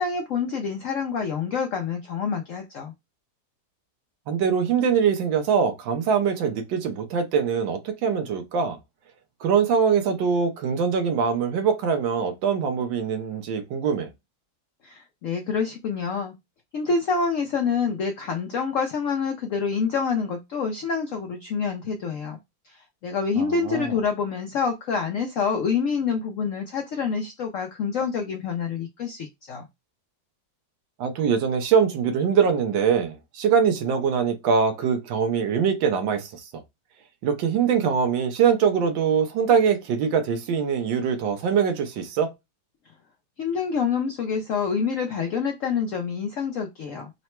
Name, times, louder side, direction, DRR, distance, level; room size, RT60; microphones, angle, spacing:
voice 1, 0.0-2.9 14.8-16.3 16.7-22.4 22.6-29.6 43.4-47.1, left 5 dB, 80° left, 0.7 m, -27 dB
voice 2, 4.3-8.8 9.4-14.1 23.4-23.9 31.0-36.6 37.2-42.3, right 6 dB, 85° right, 1.5 m, -23 dB
3.8 x 2.1 x 4.3 m
omnidirectional pair, 2.0 m